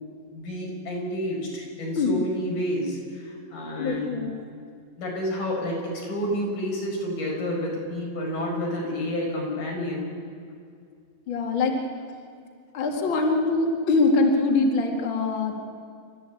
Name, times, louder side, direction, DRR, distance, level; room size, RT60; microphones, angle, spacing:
voice 1, 0.3-4.3 5.0-10.1, equal, 90° left, -1 dB, 7.2 m, -30 dB
voice 2, 3.8-4.3 11.3-11.8 12.7-15.5, left 3 dB, 40° left, 1 dB, 2.5 m, -23 dB
29.0 x 13.5 x 8.5 m, 2.3 s
omnidirectional pair, 4.0 m